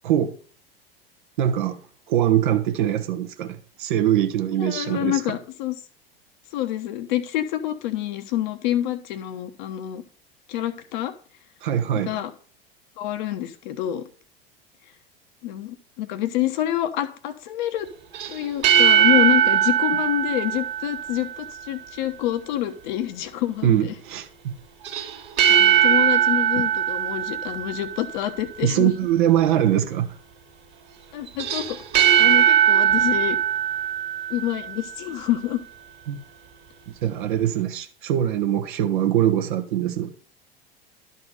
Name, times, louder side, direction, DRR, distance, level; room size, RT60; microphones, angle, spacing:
voice 1, 0.0-0.4 1.4-1.8 2.1-5.2 11.6-12.2 23.6-24.5 28.6-30.2 36.1-36.2 36.9-40.1, right 11 dB, 55° right, 1.2 m, -22 dB
voice 2, 4.6-5.8 6.5-10.0 10.5-11.1 12.0-12.3 13.0-14.0 15.4-17.9 18.3-23.9 25.5-28.9 31.1-31.8 32.2-33.4 34.3-35.6, left 13 dB, 50° left, 1.1 m, -27 dB
sound 1, 18.1-21.5 24.8-28.2 31.3-34.8, right 10 dB, 35° right, 2.0 m, -20 dB
12.0 x 4.1 x 6.4 m
figure-of-eight pair, 80°, 29 cm